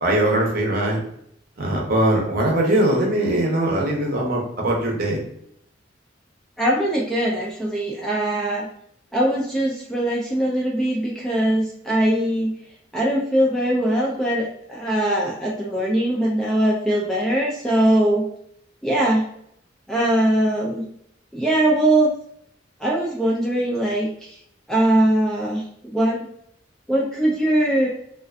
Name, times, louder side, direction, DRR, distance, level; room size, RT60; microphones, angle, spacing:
voice 1, 0.0-1.0 1.6-5.2, right 1 dB, 45° right, -1 dB, 0.7 m, -21 dB
voice 2, 6.6-8.7 9.1-12.5 12.9-18.3 18.8-19.3 19.9-20.8 21.3-22.1 22.8-24.4 24.7-25.6 25.9-26.2 26.9-27.9, right 1 dB, 5° left, -4 dB, 0.3 m, -21 dB
2.5 x 2.4 x 2.2 m, 0.71 s
head